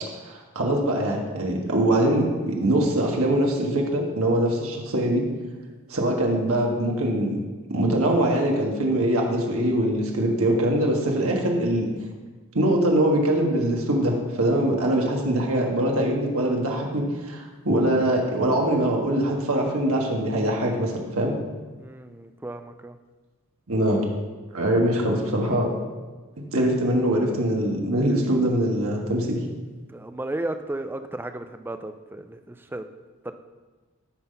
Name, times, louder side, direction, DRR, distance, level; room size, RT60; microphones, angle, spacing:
voice 1, 0.2-5.2 5.9-7.4 7.7-11.9 12.5-21.3 23.7-24.1 24.5-25.8 26.5-29.4, right 1 dB, 80° right, 0 dB, 1.5 m, -23 dB
voice 2, 21.8-23.0 29.9-32.9 33.2-33.3, right 1 dB, 10° right, 8 dB, 0.3 m, -34 dB
11.5 x 4.0 x 5.5 m, 1.3 s
head